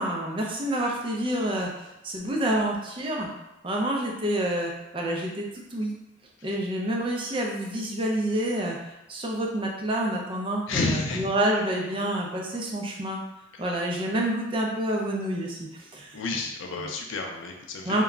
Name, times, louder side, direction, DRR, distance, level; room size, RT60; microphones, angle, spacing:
voice 1, 0.0-3.3 3.6-5.9 6.4-13.2 13.6-16.2 16.8-16.9 17.8-18.0, right 1 dB, 25° right, -1 dB, 0.4 m, -28 dB
voice 2, 10.7-11.3 16.1-18.0, left 3 dB, 80° left, 2 dB, 0.4 m, -30 dB
2.2 x 2.0 x 3.6 m, 0.97 s
head